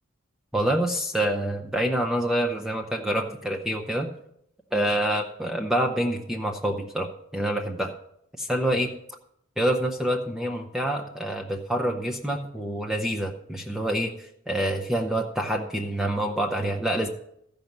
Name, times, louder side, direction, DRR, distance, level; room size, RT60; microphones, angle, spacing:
voice 1, 0.5-4.1 4.7-7.1 7.3-7.9 8.4-8.9 9.6-17.1, right 1 dB, ahead, 1 dB, 0.6 m, -27 dB
14.5 x 5.3 x 5.9 m, 0.75 s
head